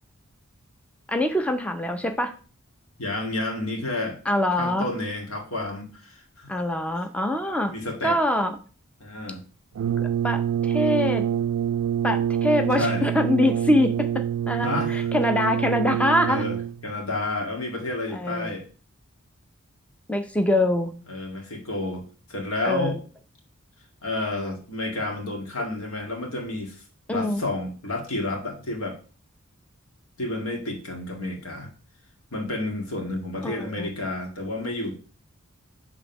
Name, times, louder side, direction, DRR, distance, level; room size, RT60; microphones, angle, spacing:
voice 1, 1.1-2.3 4.3-4.9 6.5-7.7 8.0-8.6 10.0-11.2 12.0-14.1 14.5-16.4 18.1-18.5 20.1-20.9 22.6-23.0 27.1-27.4 33.4-33.9, left 1 dB, 5° left, 6 dB, 0.5 m, -24 dB
voice 2, 3.0-4.2 4.6-6.5 7.7-8.2 9.0-9.4 12.8-13.1 14.6-15.0 16.3-16.6 16.8-18.6 21.1-22.0 22.3-23.0 24.0-26.8 27.1-29.0 30.2-31.7 32.3-35.0, left 2 dB, 75° left, 1 dB, 1.9 m, -30 dB
Brass instrument, 9.7-16.9, right 9 dB, 85° right, 0.3 m, -26 dB
7.3 x 3.6 x 5.8 m, 0.37 s
head